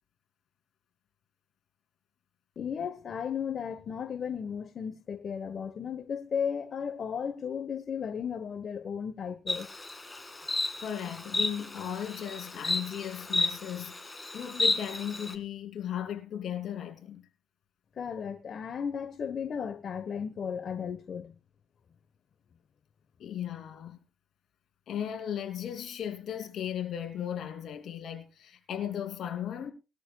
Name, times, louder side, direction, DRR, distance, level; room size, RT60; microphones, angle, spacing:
voice 1, 2.6-9.7 18.0-21.3, left 7 dB, 55° left, 1.2 m, -35 dB
Insect, 9.5-15.3, left 2 dB, 15° left, 2.2 m, -32 dB
voice 2, 10.8-17.2 23.2-24.0 24.9-29.7, left 9 dB, 70° left, 2.8 m, -36 dB
20.0 x 13.5 x 2.3 m
cardioid pair, 90°, 0 cm